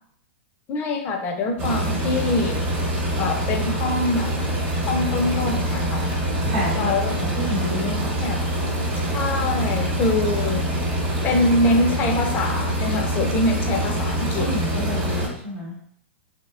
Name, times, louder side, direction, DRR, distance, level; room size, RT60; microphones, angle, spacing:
voice 1, 0.7-2.6 3.2-4.3 4.9-6.0 6.8-7.2 8.2-8.4 9.1-10.6 11.2-14.5, left 2 dB, 30° left, 3 dB, 0.4 m, -24 dB
sound 1, 1.6-15.3, right 1 dB, 30° right, 1.0 m, -25 dB
voice 2, 6.4-6.9 7.4-8.2 14.1-15.7, equal, 60° right, -6 dB, 0.9 m, -29 dB
2.6 x 2.1 x 2.3 m, 0.66 s
hypercardioid pair, 120°, 7 cm